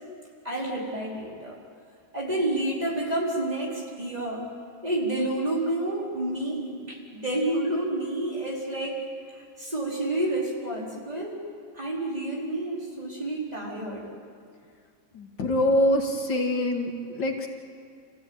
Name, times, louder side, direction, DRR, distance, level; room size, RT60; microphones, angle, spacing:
voice 1, 0.4-1.6 2.1-4.4 4.8-9.0 9.3-11.5 11.7-14.1, right 1 dB, 20° right, -4 dB, 4.7 m, -29 dB
voice 2, 15.1-17.5, left 1 dB, 75° left, 2 dB, 2.7 m, -25 dB
27.5 x 16.0 x 9.0 m, 2.3 s
omnidirectional pair, 2.0 m